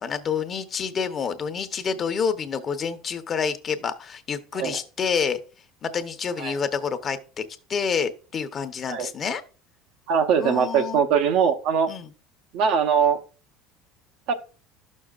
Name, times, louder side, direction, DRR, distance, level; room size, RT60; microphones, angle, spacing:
voice 1, 0.0-5.4 5.8-9.4 10.4-11.0 11.9-12.1, left 6 dB, 35° left, 0.9 m, -28 dB
voice 2, 10.1-11.9 12.5-13.2 14.3-14.4, right 7 dB, 65° right, 1.0 m, -21 dB
11.5 x 6.4 x 2.4 m
supercardioid pair, 100°, 0 cm